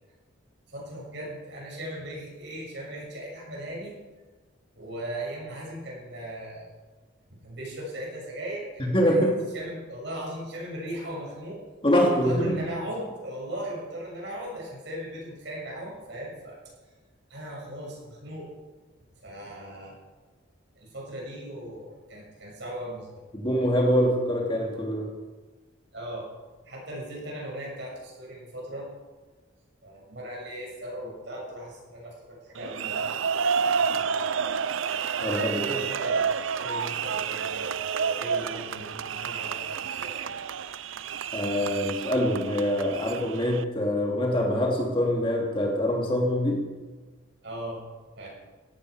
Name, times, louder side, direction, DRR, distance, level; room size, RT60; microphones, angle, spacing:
voice 1, 0.7-3.9 4.7-6.7 7.3-9.3 9.5-11.6 12.0-16.6 17.3-18.5 19.2-19.9 20.8-23.2 25.9-26.3 26.6-28.9 29.8-33.4 33.9-34.3 35.6-36.2 36.6-40.2 47.4-47.8 48.2-48.3, right 1 dB, 60° right, -3 dB, 6.6 m, -38 dB
voice 2, 8.8-9.3 11.8-12.6 23.3-25.1 35.2-35.6 41.3-46.6, equal, 25° left, -1 dB, 2.5 m, -24 dB
sound 1, 32.6-43.6, right 6 dB, 80° right, 0.6 m, -30 dB
17.5 x 13.0 x 4.9 m, 1.3 s
head